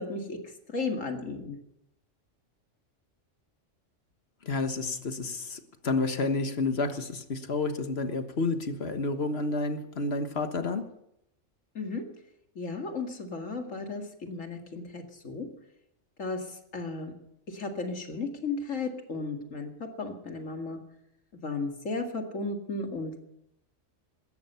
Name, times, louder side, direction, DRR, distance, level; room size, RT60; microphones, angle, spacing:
voice 1, 0.0-1.6 11.7-12.0 12.6-15.5 16.2-17.1 17.5-20.8 21.4-23.2, left 3 dB, 85° left, 4 dB, 2.5 m, -35 dB
voice 2, 4.4-10.8, left 3 dB, 55° left, 8 dB, 1.6 m, -30 dB
17.5 x 14.0 x 5.7 m, 0.80 s
omnidirectional pair, 1.3 m